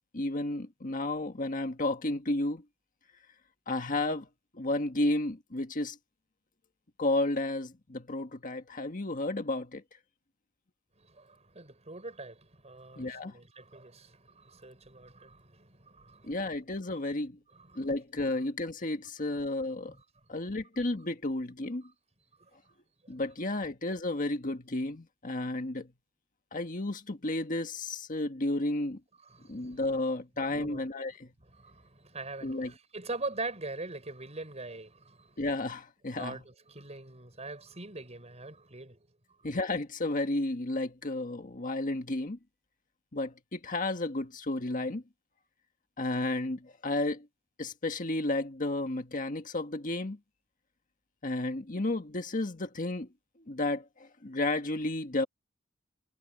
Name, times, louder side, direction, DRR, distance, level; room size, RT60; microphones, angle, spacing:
voice 1, 0.1-2.6 3.7-4.3 4.5-6.0 7.0-9.8 13.0-13.3 16.2-17.4 17.7-19.9 20.3-21.8 23.1-25.9 26.5-29.0 29.5-31.3 32.4-32.7 35.4-36.4 39.4-42.4 43.1-45.0 46.0-47.3 47.6-50.2 51.2-53.1 53.5-55.3, left 2 dB, 40° left, 1.6 m, -32 dB
voice 2, 11.0-16.5 16.9-17.0 17.5-17.9 19.3-19.4 22.4-22.5 29.2-29.8 30.5-30.9 31.5-35.4 36.2-39.0, right 3 dB, 35° right, 6.1 m, -43 dB
head